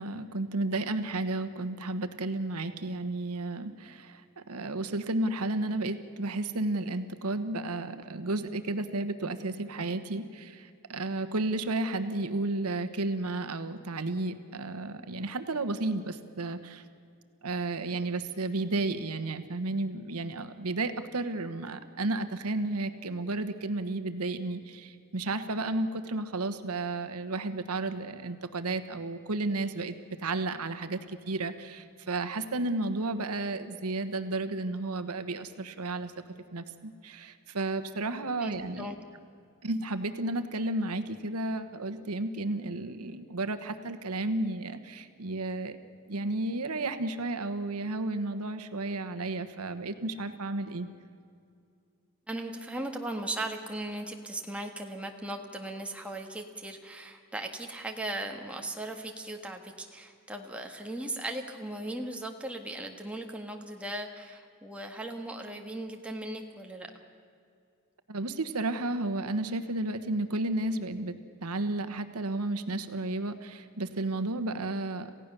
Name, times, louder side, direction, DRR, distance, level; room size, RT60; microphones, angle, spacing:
voice 1, 0.0-16.8 17.4-36.1 36.5-38.9 39.6-45.8 46.1-50.9 68.1-75.1, right 2 dB, 85° right, 10 dB, 1.2 m, -32 dB
voice 2, 38.4-39.0 52.3-66.9, right 1 dB, 5° right, 2 dB, 1.7 m, -38 dB
28.0 x 16.0 x 6.8 m, 2.4 s
head